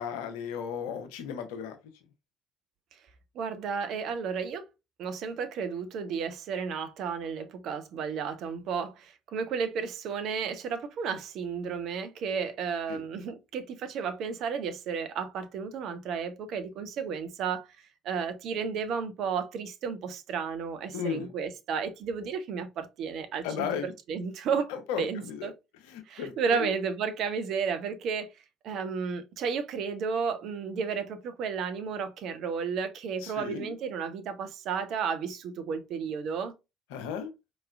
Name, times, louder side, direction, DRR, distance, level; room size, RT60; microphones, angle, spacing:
voice 1, 0.0-1.8 12.9-13.0 20.9-21.3 23.4-23.9 24.7-25.5 25.8-26.7 33.2-33.7 36.9-37.3, left 7 dB, 70° left, 0.7 m, -35 dB
voice 2, 3.3-4.7 5.0-17.7 18.0-24.7 25.0-25.5 26.1-28.3 28.6-36.5, right 6 dB, 60° right, 0.7 m, -33 dB
4.5 x 3.1 x 2.4 m
figure-of-eight pair, 55°, 0 cm